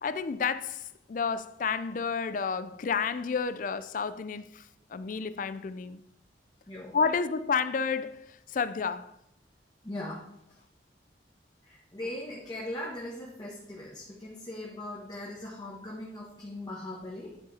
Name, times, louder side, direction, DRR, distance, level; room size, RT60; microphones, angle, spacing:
voice 1, 0.0-4.6 4.9-6.0 6.9-9.1, left 5 dB, 45° left, 0.4 m, -31 dB
voice 2, 9.8-10.6 11.6-17.4, left 1 dB, 20° left, 1.3 m, -40 dB
10.0 x 5.0 x 4.2 m
head